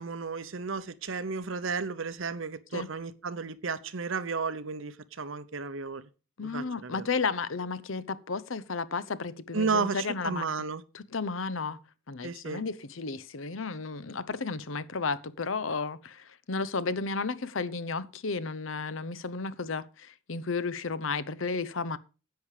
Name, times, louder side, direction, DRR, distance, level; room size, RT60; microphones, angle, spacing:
voice 1, 0.0-6.1 6.4-7.1 9.5-10.8 12.2-12.6, right 4 dB, 70° right, 0.9 m, -33 dB
voice 2, 6.4-10.4 10.9-11.8 12.1-22.0, left 4 dB, 70° left, 0.8 m, -33 dB
10.5 x 8.5 x 4.9 m
head